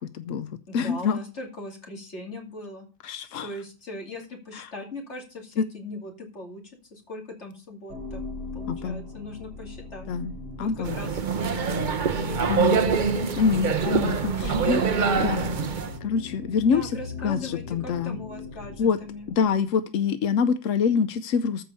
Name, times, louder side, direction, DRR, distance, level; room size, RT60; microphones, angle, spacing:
voice 1, 0.1-1.2 3.0-3.6 4.5-4.7 5.6-5.7 8.7-9.0 10.1-10.3 10.6-11.0 12.5-12.8 13.4-14.8 15.2-15.4 16.0-18.2 18.8-19.0 19.4-21.6, left 6 dB, 60° left, 11 dB, 0.8 m, -25 dB
voice 2, 0.7-2.9 3.4-6.6 6.9-8.2 8.5-10.1 10.6-13.3 14.4-14.6 14.9-16.1 16.7-19.3, left 2 dB, 35° left, 2 dB, 2.8 m, -40 dB
sound 1, 7.9-19.8, left 3 dB, 35° right, 2.9 m, -40 dB
sound 2, 10.8-16.0, right 5 dB, 65° right, 0.4 m, -25 dB
14.0 x 5.0 x 6.7 m, 0.34 s
omnidirectional pair, 2.0 m